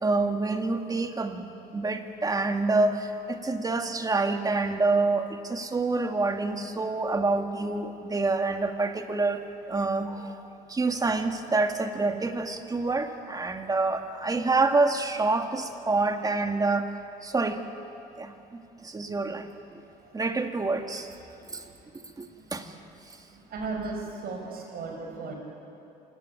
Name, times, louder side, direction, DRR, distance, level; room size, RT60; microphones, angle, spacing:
voice 1, 0.0-9.4 9.7-16.9 17.2-17.6 18.2-19.5 20.1-21.1 21.5-21.6 22.2-22.7, right 3 dB, 20° right, 6 dB, 2.0 m, -27 dB
voice 2, 23.3-25.3, right 3 dB, 65° right, 2 dB, 6.3 m, -36 dB
27.0 x 18.0 x 9.7 m, 2.8 s
cardioid pair, 110°, 17 cm